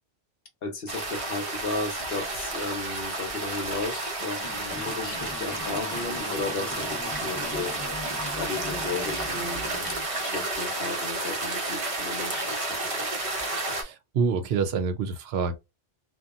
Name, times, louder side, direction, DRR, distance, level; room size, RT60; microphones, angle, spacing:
voice 1, 0.6-7.7 8.4-12.6 12.8-13.1, left 3 dB, 65° left, 0.9 m, -34 dB
sound 1, 0.9-13.8, right 2 dB, 40° right, 0.6 m, -31 dB
sound 2, 4.4-10.0, left 1 dB, 20° left, 0.7 m, -41 dB
voice 2, 13.7-15.6, right 5 dB, 75° right, 0.8 m, -27 dB
2.7 x 2.2 x 2.4 m
omnidirectional pair, 1.1 m